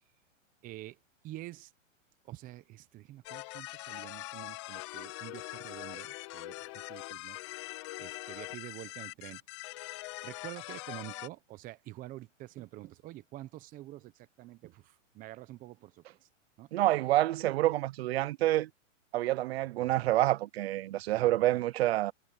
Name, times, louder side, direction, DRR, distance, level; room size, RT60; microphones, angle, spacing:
voice 1, 0.6-1.0 1.2-1.7 2.2-7.4 8.0-9.4 10.2-16.3 16.6-16.7 21.1-21.6, right 16 dB, 20° right, 1.0 m, -47 dB
sound 1, 3.3-11.3, left 21 dB, 25° left, 0.5 m, -43 dB
voice 2, 16.7-18.7 19.1-22.1, right 15 dB, 55° right, 0.7 m, -28 dB
hypercardioid pair, 150°, 39 cm